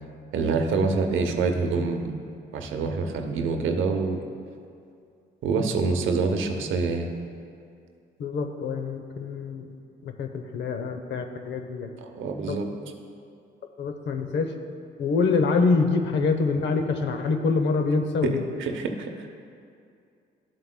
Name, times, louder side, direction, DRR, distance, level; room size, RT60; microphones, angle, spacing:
voice 1, 0.3-2.1 2.5-4.2 5.4-7.1 12.0-12.6 18.2-18.3 18.6-19.3, right 4 dB, 75° right, 4 dB, 0.8 m, -26 dB
voice 2, 8.2-9.7 10.0-11.9 12.5-12.6 13.8-14.5 15.0-18.5, left 4 dB, 65° left, 6 dB, 0.7 m, -25 dB
12.5 x 7.6 x 2.2 m, 2.4 s
cardioid pair, 90°, 20 cm